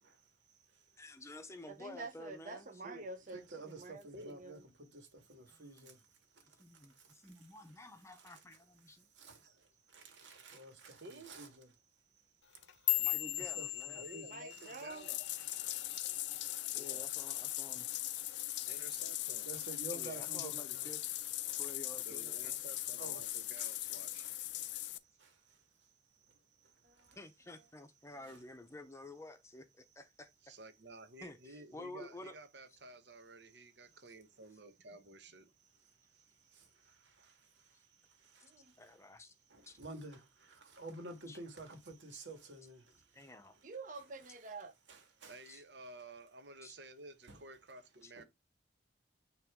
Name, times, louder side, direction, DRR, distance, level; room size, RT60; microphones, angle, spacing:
voice 1, 1.0-2.7 5.5-6.0 6.4-9.1 10.2-10.3 13.0-14.0 16.6-17.9 19.9-21.0 21.6-22.6 27.2-30.3 31.2-32.3 38.8-39.3 39.7-39.8 41.3-41.4 43.1-43.6 45.5-45.6 46.6-46.7 48.0-48.1, left 2 dB, 15° left, 0.7 m, -51 dB
voice 2, 1.7-4.6 10.5-10.7 14.3-15.1 26.8-27.2 38.4-38.7 43.6-44.7, right 3 dB, 45° right, 0.9 m, -48 dB
voice 3, 3.3-6.0 9.2-9.4 9.9-11.7 13.4-14.2 14.6-14.9 15.6-15.8 19.4-20.8 21.5-21.7 23.0-23.3 23.6-23.8 25.2-25.3 27.1-27.2 28.3-28.4 36.5-37.4 38.2-38.5 39.5-43.0 45.2-45.3 47.3-47.4 48.2-48.3, right 2 dB, 85° right, 1.9 m, -50 dB
voice 4, 11.0-11.3 14.0-15.2 16.7-17.1 18.7-19.5 22.0-24.3 30.4-35.5 45.2-48.2, right 2 dB, 70° right, 1.1 m, -53 dB
sound 1, 12.4-16.8 17.1-17.5 17.9-18.3 18.7-18.9 19.5-19.9 20.3-21.2 21.5-22.0 22.7-22.8, left 16 dB, 90° left, 0.8 m, -38 dB
Bathtub (filling or washing), 14.9-25.0, left 15 dB, 70° left, 0.5 m, -40 dB
8.9 x 3.1 x 3.6 m
head